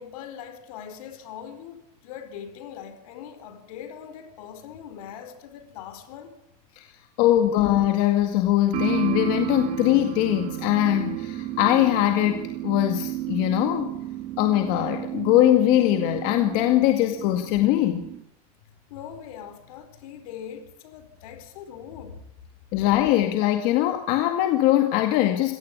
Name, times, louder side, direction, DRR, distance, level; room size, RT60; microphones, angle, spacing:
voice 1, 0.0-6.3 18.9-22.2, left 8 dB, 75° left, 4.6 m, -41 dB
voice 2, 7.2-13.9 14.4-18.1 22.7-25.6, left 14 dB, 50° left, 2.0 m, -21 dB
sound 1, 8.7-18.2, right 14 dB, 35° right, 1.9 m, -32 dB
25.5 x 17.5 x 8.5 m
supercardioid pair, 170°, 19 cm